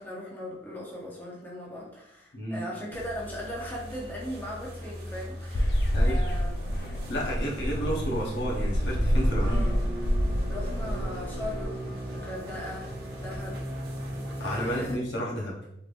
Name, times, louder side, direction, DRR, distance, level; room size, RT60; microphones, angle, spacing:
voice 1, 0.0-6.9 7.8-8.3 9.4-9.8 10.5-13.6 14.4-15.0, equal, 10° left, -4 dB, 0.7 m, -39 dB
sound 1, 2.9-14.9, right 1 dB, 60° right, 0.7 m, -38 dB
sound 2, 5.5-11.6, equal, 65° left, 0.4 m, -27 dB
voice 2, 7.1-9.6 14.4-15.6, equal, 80° left, -3 dB, 0.9 m, -31 dB
3.4 x 3.1 x 2.5 m, 0.79 s
head